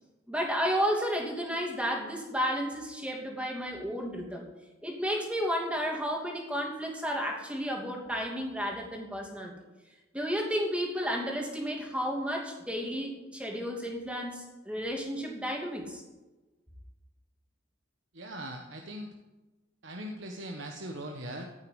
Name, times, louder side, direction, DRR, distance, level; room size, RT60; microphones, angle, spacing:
voice 1, 0.3-4.5 4.8-9.5 10.1-16.0, equal, 5° right, 0 dB, 2.6 m, -32 dB
voice 2, 18.1-19.1 19.8-21.5, right 1 dB, 65° right, 2 dB, 1.3 m, -40 dB
15.5 x 6.8 x 9.8 m, 1.1 s
head